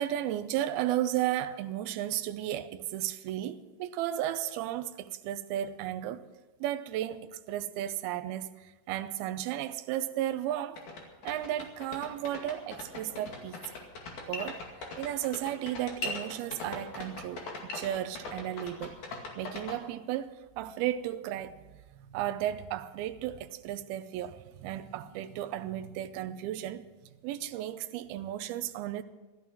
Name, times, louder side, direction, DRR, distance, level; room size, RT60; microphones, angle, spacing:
voice 1, 0.0-6.2 6.6-10.8 11.2-13.6 14.3-14.6 15.0-19.0 19.4-21.6 22.1-26.8 27.2-29.0, right 12 dB, 80° right, 2.5 m, -34 dB
sound 1, 10.5-10.6 10.8-19.8, left 3 dB, 55° left, 3.4 m, -39 dB
15.0 x 13.0 x 6.1 m
omnidirectional pair, 4.6 m